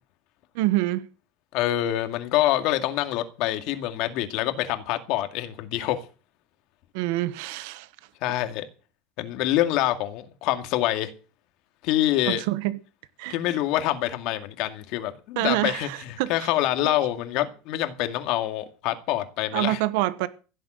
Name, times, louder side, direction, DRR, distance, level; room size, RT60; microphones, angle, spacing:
voice 1, 0.5-1.1 6.9-7.9 12.3-12.8 13.2-13.3 15.4-16.3 19.5-20.3, right 16 dB, 75° right, 1.1 m, -26 dB
voice 2, 1.5-6.1 8.2-8.6 9.2-11.1 11.8-12.4 13.3-19.8, left 14 dB, 60° left, 2.1 m, -26 dB
16.0 x 7.7 x 7.7 m
cardioid pair, 155°, 0 cm